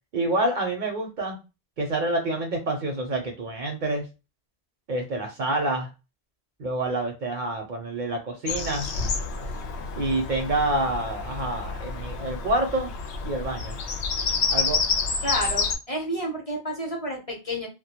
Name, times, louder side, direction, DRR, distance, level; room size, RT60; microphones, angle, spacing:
voice 1, 0.1-1.4 1.8-4.0 4.9-5.9 6.6-8.9 10.0-12.9 13.2-13.8 14.5-14.8, right 2 dB, 55° right, 3 dB, 0.6 m, -27 dB
Bird vocalization bird call bird song, 8.5-15.8, left 4 dB, 85° left, 0.8 m, -29 dB
voice 2, 15.2-17.7, equal, 40° left, -1 dB, 0.7 m, -30 dB
2.1 x 2.1 x 2.7 m, 0.28 s
omnidirectional pair, 1.1 m